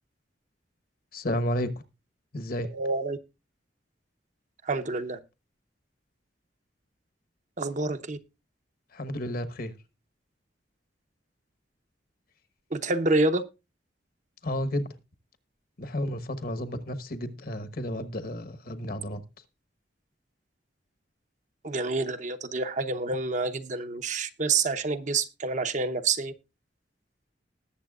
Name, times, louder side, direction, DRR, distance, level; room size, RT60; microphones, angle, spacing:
voice 1, 1.1-1.7 2.3-2.7 8.9-9.7 14.4-14.9 15.8-19.2, equal, 50° left, 1.2 m, -32 dB
voice 2, 2.7-3.2 4.6-5.2 7.6-8.2 12.7-13.4 21.6-26.3, right 3 dB, 40° right, 0.8 m, -28 dB
20.0 x 7.3 x 2.4 m
head